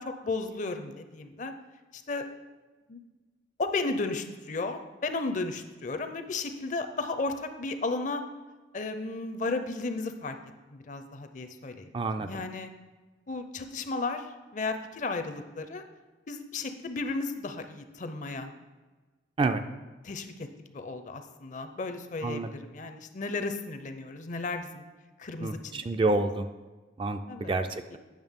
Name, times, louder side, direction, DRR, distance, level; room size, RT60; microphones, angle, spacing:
voice 1, 0.0-1.5 1.9-2.3 2.9-3.0 3.6-8.2 8.7-10.4 10.7-11.9 12.2-12.7 13.3-14.3 14.5-15.8 16.3-18.5 20.0-20.5 20.7-24.8 25.2-25.8 27.3-27.5 27.9-28.0, left 3 dB, 45° left, 8 dB, 0.5 m, -34 dB
voice 2, 11.9-12.3 19.4-19.6 22.2-22.5 25.4-26.5 27.0-28.0, right 3 dB, 30° right, 8 dB, 0.3 m, -28 dB
8.8 x 6.0 x 3.6 m, 1.3 s
head